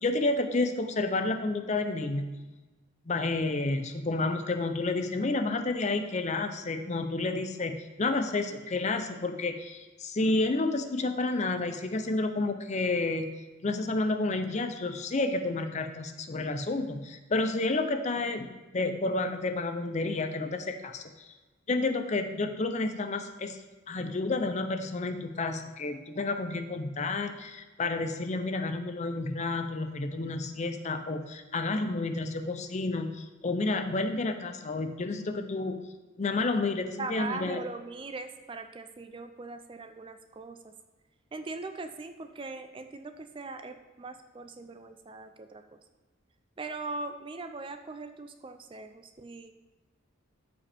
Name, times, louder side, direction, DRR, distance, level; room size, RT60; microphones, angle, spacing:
voice 1, 0.0-2.4 3.1-13.3 13.6-21.3 21.7-23.6 23.9-35.8 36.2-37.6, left 2 dB, 35° left, 8 dB, 0.5 m, -30 dB
voice 2, 37.0-40.6 41.3-45.6 46.6-49.5, right 3 dB, 25° right, 8 dB, 0.4 m, -40 dB
13.5 x 5.0 x 3.4 m, 1.2 s
head